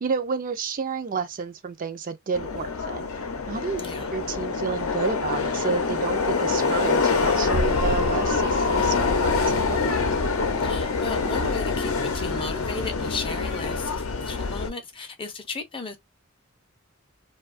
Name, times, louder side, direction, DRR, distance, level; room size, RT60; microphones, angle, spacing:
voice 1, 0.0-3.1 3.5-3.8 4.1-10.1, right 5 dB, 40° right, 0.4 m, -30 dB
Subway metro underground, 2.3-14.7, left 4 dB, 75° left, 0.6 m, -25 dB
voice 2, 3.8-4.1 10.6-16.0, left 4 dB, 25° left, 0.5 m, -35 dB
2.7 x 2.2 x 2.4 m
head